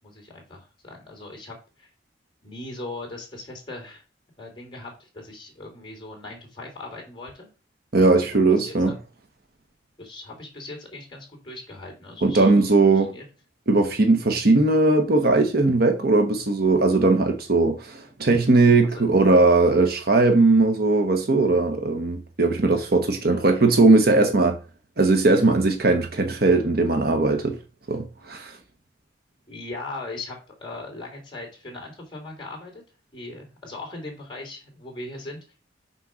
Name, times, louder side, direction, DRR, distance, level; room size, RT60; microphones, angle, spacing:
voice 1, 0.0-1.9 2.4-4.0 4.4-7.5 8.3-9.0 10.0-12.7 12.9-13.2 18.8-19.0 29.5-32.8 33.1-35.4, left 2 dB, 25° left, 3.2 m, -39 dB
voice 2, 7.9-8.9 12.2-13.1 13.7-24.6 25.0-27.6 27.9-28.6, right 3 dB, 60° right, 1.1 m, -19 dB
6.2 x 4.6 x 6.3 m
head